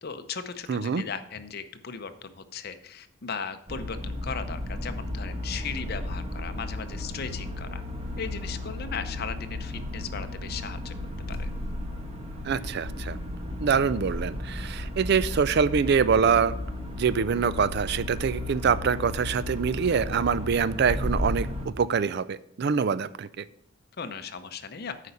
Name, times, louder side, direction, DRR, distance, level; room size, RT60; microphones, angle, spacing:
voice 1, 0.0-7.8 8.2-11.0 11.3-11.5 24.0-24.9, left 6 dB, 50° left, 9 dB, 0.7 m, -37 dB
voice 2, 0.7-1.0 12.4-13.2 13.6-16.5 17.0-23.4, right 6 dB, 55° right, 16 dB, 0.4 m, -25 dB
sound 1, 3.7-21.7, left 1 dB, 30° right, 1.2 m, -34 dB
8.3 x 5.1 x 6.9 m, 0.73 s
head